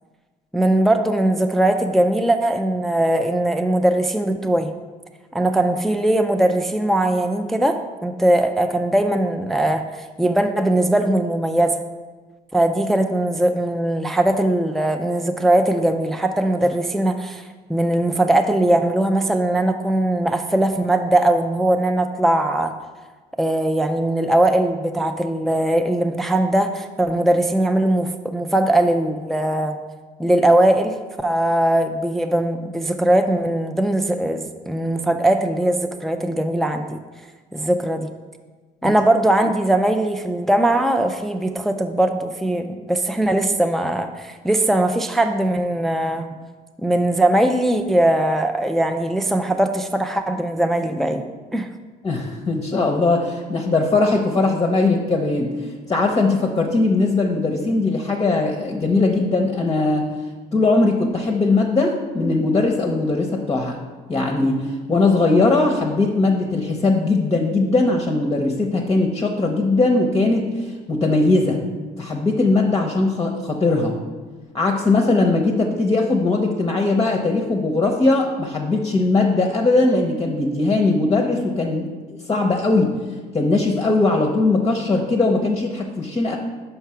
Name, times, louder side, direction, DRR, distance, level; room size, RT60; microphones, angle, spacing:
voice 1, 0.5-4.8 5.3-11.8 12.5-17.4 17.7-22.8 23.4-29.8 30.2-37.0 37.5-38.1 38.8-46.4 46.8-51.7, right 1 dB, ahead, 6 dB, 0.3 m, -20 dB
voice 2, 52.0-60.1 60.5-63.8 64.1-71.6 72.0-74.0 74.5-82.9 83.3-86.4, left 3 dB, 25° left, 3 dB, 0.7 m, -20 dB
5.7 x 4.7 x 5.6 m, 1.4 s
cardioid pair, 110°, 17 cm